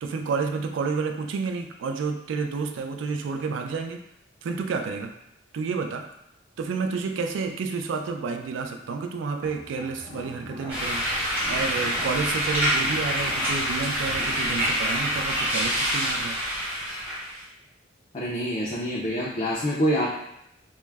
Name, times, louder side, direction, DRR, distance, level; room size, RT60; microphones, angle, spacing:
voice 1, 0.0-4.0 4.4-5.1 5.5-6.1 6.6-16.4, right 5 dB, 75° right, 5 dB, 0.3 m, -30 dB
sound 1, 9.4-14.7, left 1 dB, 45° right, 0.9 m, -43 dB
sound 2, 10.7-17.4, equal, 10° right, 0.9 m, -26 dB
voice 2, 18.1-20.1, equal, 30° left, -6 dB, 0.3 m, -26 dB
2.2 x 2.0 x 3.2 m, 0.81 s
head